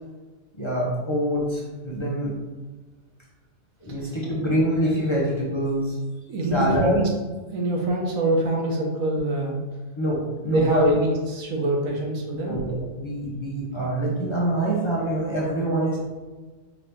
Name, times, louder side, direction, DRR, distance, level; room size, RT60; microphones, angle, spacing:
voice 1, 0.6-2.4 3.8-6.0 6.4-7.0 10.0-10.9 12.3-16.0, right 1 dB, 25° left, -6 dB, 0.7 m, -25 dB
voice 2, 6.3-7.1 7.5-9.6 10.5-12.6, right 1 dB, 90° right, 0 dB, 1.3 m, -24 dB
4.8 x 2.8 x 3.5 m, 1.3 s
omnidirectional pair, 1.4 m